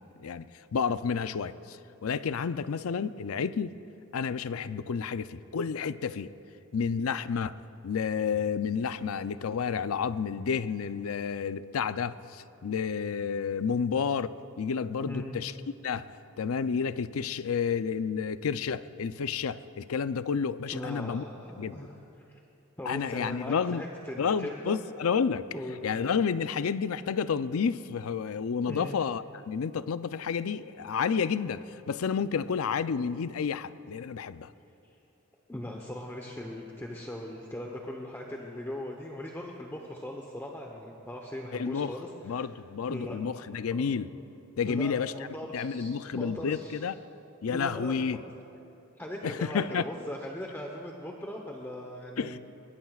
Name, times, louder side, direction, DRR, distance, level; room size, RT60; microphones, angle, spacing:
voice 1, 0.0-3.7 4.1-6.3 6.7-7.5 7.8-15.5 15.8-16.1 16.4-21.2 21.6-21.9 22.9-23.8 24.2-25.4 25.8-34.5 41.5-41.9 42.2-44.1 44.6-45.1 45.5-47.0 47.4-48.2 49.2-49.9 52.2-52.4, left 6 dB, 80° left, 14 dB, 0.5 m, -30 dB
voice 2, 15.1-15.4 20.7-21.9 22.8-24.8 25.5-25.8 28.6-29.0 35.5-42.5 42.9-43.2 43.7-43.9 44.6-46.8 47.5-48.3 49.0-52.4, left 1 dB, 10° left, 0 dB, 0.9 m, -39 dB
23.0 x 21.0 x 2.4 m, 2.8 s
head